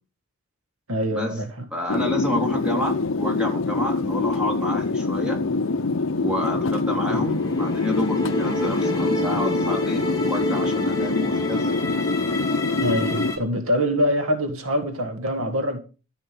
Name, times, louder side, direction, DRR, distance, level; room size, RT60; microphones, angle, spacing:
voice 1, 0.9-1.5 7.0-7.3 12.7-15.8, equal, 75° right, 1.8 m, -24 dB
voice 2, 1.7-5.4 6.2-11.8, left 1 dB, 5° right, 3.7 m, -29 dB
sound 1, 1.9-13.3, left 3 dB, 60° left, 0.7 m, -25 dB
sound 2, 6.8-13.4, left 1 dB, 15° left, 2.3 m, -30 dB
14.0 x 5.6 x 8.5 m
head